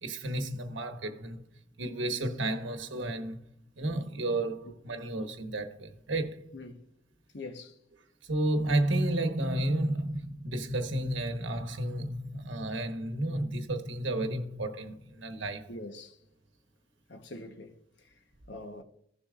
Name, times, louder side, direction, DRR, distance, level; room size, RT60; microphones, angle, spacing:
voice 1, 0.0-1.4 1.8-3.4 3.8-6.4 8.3-15.7, right 1 dB, 90° right, 1.2 m, -32 dB
voice 2, 6.5-6.9 7.3-7.8 15.7-16.2 17.1-18.8, left 2 dB, 65° left, 1.0 m, -45 dB
16.0 x 7.0 x 2.4 m
head